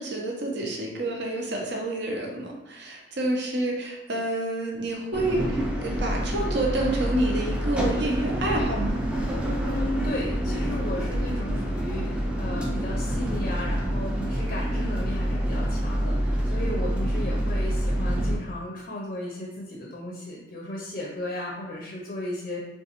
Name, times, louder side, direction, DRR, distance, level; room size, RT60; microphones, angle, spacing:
voice 1, 0.0-9.0, right 1 dB, 65° right, 0 dB, 0.7 m, -28 dB
sound 1, 5.1-18.4, equal, 5° right, 0.4 m, -27 dB
voice 2, 9.6-22.6, left 1 dB, 45° left, -2 dB, 0.5 m, -35 dB
3.7 x 2.3 x 2.8 m, 1.0 s
head